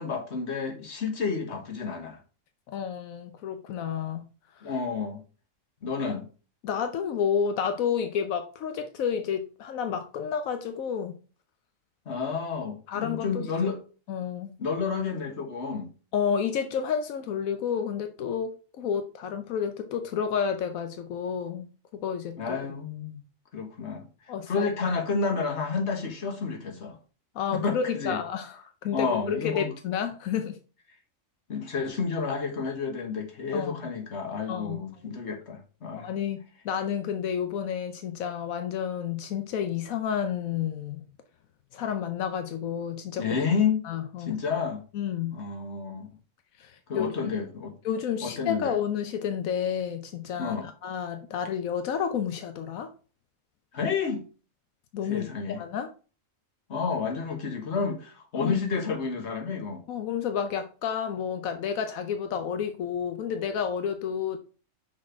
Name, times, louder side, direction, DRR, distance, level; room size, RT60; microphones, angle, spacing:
voice 1, 0.0-2.2 4.6-5.2 5.8-6.3 12.0-13.8 14.6-15.9 22.4-23.2 23.5-27.0 27.5-28.2 28.9-29.7 31.5-36.1 43.2-43.9 44.2-44.8 45.3-46.1 46.9-47.7 48.2-48.7 50.4-50.7 53.7-54.2 55.1-55.6 56.7-59.9, left 5 dB, 55° left, 1.6 m, -30 dB
voice 2, 2.7-4.3 6.6-11.2 12.9-13.4 14.1-14.5 16.1-21.7 22.0-22.6 24.3-24.7 27.3-30.6 33.5-33.8 34.5-34.9 36.0-36.4 36.6-41.0 41.7-43.3 43.8-44.4 44.9-45.4 46.6-47.3 47.8-50.6 50.8-52.9 54.9-55.9 58.4-58.6 59.9-64.4, left 7 dB, 90° left, 1.1 m, -30 dB
6.0 x 4.4 x 4.4 m
omnidirectional pair, 1.4 m